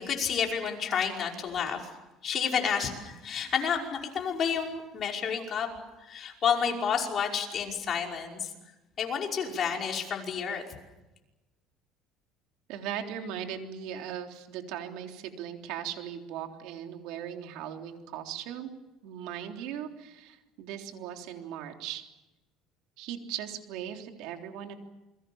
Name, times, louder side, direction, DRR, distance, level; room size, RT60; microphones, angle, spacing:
voice 1, 0.0-1.9 2.2-5.7 6.0-8.5 9.0-10.6, left 7 dB, 40° left, 1 dB, 5.4 m, -30 dB
voice 2, 12.7-18.7 19.0-22.0 23.0-24.8, right 9 dB, 75° right, 4 dB, 3.6 m, -38 dB
28.5 x 23.0 x 7.3 m, 1.0 s
cardioid pair, 140°, 0 cm